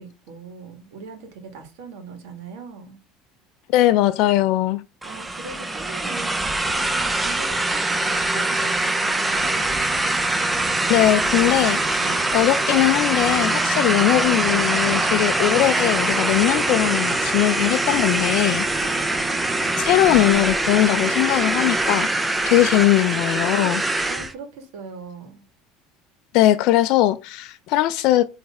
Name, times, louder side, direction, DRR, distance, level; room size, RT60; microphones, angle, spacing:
voice 1, 0.0-3.0 5.0-9.8 11.9-12.3 18.8-19.2 24.0-25.4, right 4 dB, 75° right, 1.8 m, -40 dB
voice 2, 3.7-4.8 10.9-18.7 19.8-23.8 26.3-28.2, left 15 dB, 55° left, 0.4 m, -20 dB
sound 1, 5.0-24.3, right 2 dB, 10° right, 0.4 m, -23 dB
Boat Water vehicle, 9.3-20.3, right 4 dB, 40° right, 1.7 m, -38 dB
Wind instrument woodwind instrument, 18.8-22.8, left 8 dB, 10° left, 3.3 m, -47 dB
8.6 x 3.3 x 3.5 m
cardioid pair, 165°, 0 cm